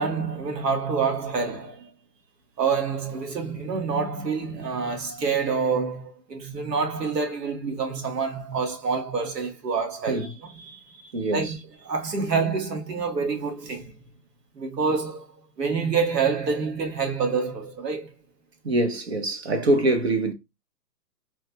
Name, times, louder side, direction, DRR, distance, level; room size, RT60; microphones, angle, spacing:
voice 1, 0.0-1.9 2.6-11.6 11.8-13.9 14.5-18.1, right 5 dB, 70° right, 1.5 m, -27 dB
voice 2, 11.1-11.5 18.6-20.3, right 1 dB, 40° right, 0.7 m, -24 dB
3.2 x 2.3 x 2.7 m
hypercardioid pair, 160°, 50 cm